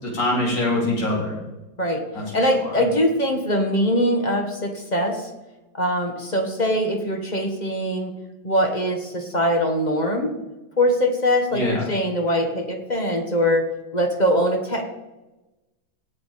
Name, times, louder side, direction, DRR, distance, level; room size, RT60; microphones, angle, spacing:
voice 1, 0.0-1.4 2.1-2.5 11.5-11.8, left 1 dB, 60° left, -3 dB, 4.6 m, -24 dB
voice 2, 2.3-5.3 5.7-8.1 8.4-10.3 10.8-14.8, equal, 25° left, 5 dB, 1.3 m, -22 dB
17.5 x 7.2 x 5.2 m, 1.1 s
omnidirectional pair, 2.2 m